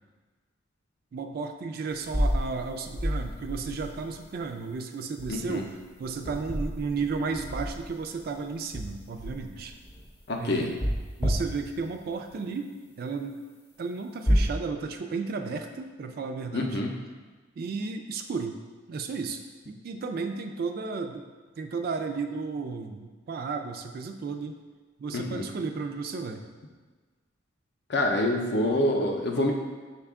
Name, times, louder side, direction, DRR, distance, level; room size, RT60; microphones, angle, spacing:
voice 1, 1.1-9.7 10.4-10.8 11.2-13.4 13.8-16.8 17.6-18.6 18.9-19.4 19.7-21.3 21.6-24.6 25.0-26.4, right 4 dB, 50° right, 6 dB, 0.3 m, -33 dB
sound 1, 2.0-4.2 5.2-5.5 5.8-8.2 8.6-10.2 10.8-11.9 14.3-14.5, equal, 10° left, 0.5 m, -29 dB
voice 2, 5.3-5.6 10.3-10.7 16.5-17.0 25.1-25.5 27.9-29.5, left 1 dB, 60° left, 2 dB, 0.5 m, -26 dB
5.6 x 2.3 x 3.5 m, 1.4 s
head